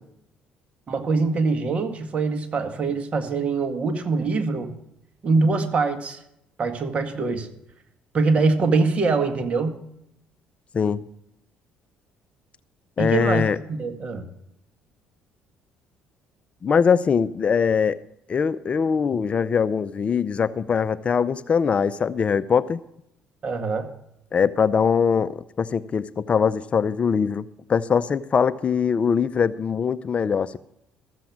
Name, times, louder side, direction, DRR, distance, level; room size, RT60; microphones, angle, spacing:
voice 1, 0.9-4.7 5.2-6.2 6.6-7.5 8.1-9.8 13.0-14.2 23.4-23.9, right 4 dB, 40° right, 7 dB, 1.9 m, -23 dB
voice 2, 13.0-13.6 16.6-18.0 18.3-22.8 24.3-30.6, left 6 dB, 40° left, 15 dB, 0.5 m, -22 dB
14.0 x 7.6 x 7.2 m, 0.78 s
cardioid pair, 85°, 3 cm